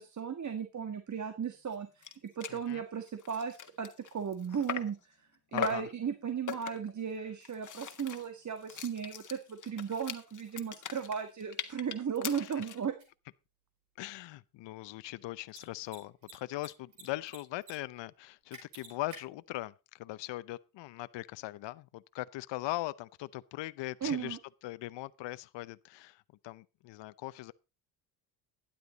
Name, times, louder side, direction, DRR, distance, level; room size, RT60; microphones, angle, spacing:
voice 1, 0.0-5.1 5.5-12.9 24.0-24.4, right 7 dB, 35° right, 1.6 m, -36 dB
sound 1, 1.7-1.8 2.0-2.2 2.4-2.6 3.1-5.0 5.6-5.9 6.5-7.0 7.4-12.9, left 8 dB, 40° left, 1.6 m, -40 dB
voice 2, 2.5-2.8 5.5-5.9 12.4-12.5 14.0-24.4 24.6-27.5, left 17 dB, 65° left, 0.7 m, -40 dB
Mechanisms, 13.0-13.1 15.4-15.6 15.9-17.0 17.3-17.7 18.0-18.1 18.5-19.2, right 4 dB, 85° right, 7.5 m, -49 dB
12.0 x 10.5 x 4.0 m
supercardioid pair, 80°, 47 cm